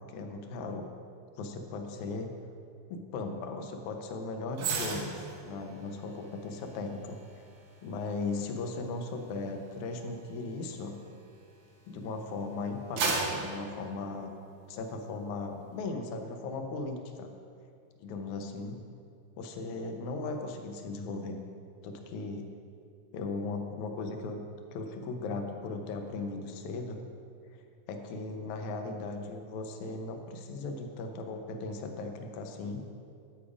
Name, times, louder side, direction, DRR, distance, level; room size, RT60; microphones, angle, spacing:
voice 1, 0.1-0.9 1.4-2.3 2.9-7.2 7.8-11.0 11.9-14.3 14.7-17.3 18.0-18.8 19.4-21.4 21.8-22.5 23.1-24.5 24.7-27.0 27.5-27.6 27.9-32.8, left 3 dB, 80° left, 4 dB, 2.2 m, -37 dB
sound 1, 4.6-12.0 12.4-14.8 15.2-15.4, right 4 dB, 75° right, 2.5 m, -38 dB
9.1 x 8.2 x 4.9 m, 2.3 s
omnidirectional pair, 3.4 m